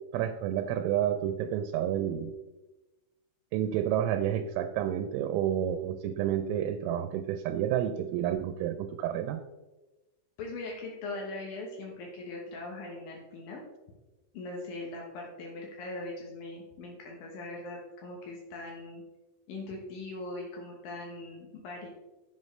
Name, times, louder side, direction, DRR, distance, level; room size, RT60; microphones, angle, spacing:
voice 1, 0.1-2.3 3.5-9.4, right 10 dB, 85° right, 9 dB, 3.3 m, -30 dB
voice 2, 10.4-13.6 14.3-19.0 19.5-21.9, left 2 dB, 85° left, -1 dB, 2.0 m, -40 dB
11.0 x 7.9 x 3.2 m, 1.1 s
omnidirectional pair, 5.9 m